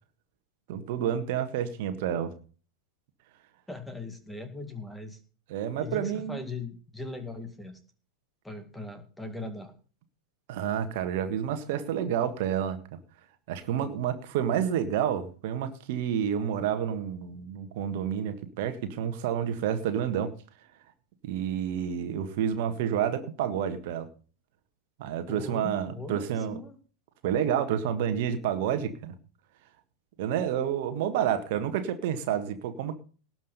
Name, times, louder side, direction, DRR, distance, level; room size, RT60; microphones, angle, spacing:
voice 1, 0.7-2.3 5.5-6.4 10.5-13.0 13.5-20.3 21.2-24.1 25.0-26.6 27.2-29.1 30.2-32.9, right 9 dB, 50° right, 8 dB, 1.7 m, -29 dB
voice 2, 3.7-5.2 5.8-7.8 8.4-9.7 25.3-26.8, left 2 dB, 5° left, 8 dB, 2.1 m, -39 dB
18.5 x 6.2 x 5.5 m, 0.39 s
figure-of-eight pair, 90°, 0 cm